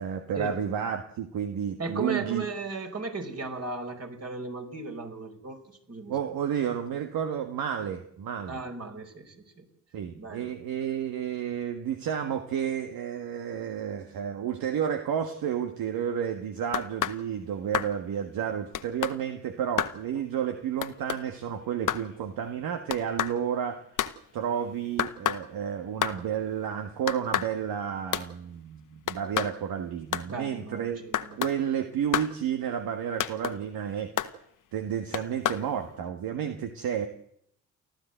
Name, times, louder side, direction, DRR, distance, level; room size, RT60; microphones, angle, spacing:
voice 1, 0.0-2.4 6.1-8.6 9.9-23.8 24.3-31.0 31.3-34.3 34.7-37.1, right 8 dB, 65° right, 7 dB, 1.6 m, -31 dB
voice 2, 1.8-5.6 5.9-6.3 8.5-9.7 10.2-10.5 30.3-31.4, right 3 dB, 40° right, 4 dB, 5.3 m, -36 dB
sound 1, 16.7-17.2 17.7-17.9 18.7-19.2 19.8-20.0 20.8-21.2 21.9-22.1 22.9-23.4 24.0-24.2 25.0-25.5 26.0-26.2 27.1-27.5 28.1-28.3 29.1-29.5 30.1-30.3 31.1-31.6 32.1-32.3 33.2-33.6 34.2-34.3 35.1-35.7, left 10 dB, 55° left, 1.3 m, -29 dB
29.5 x 12.0 x 8.0 m, 0.72 s
hypercardioid pair, 40°, 38 cm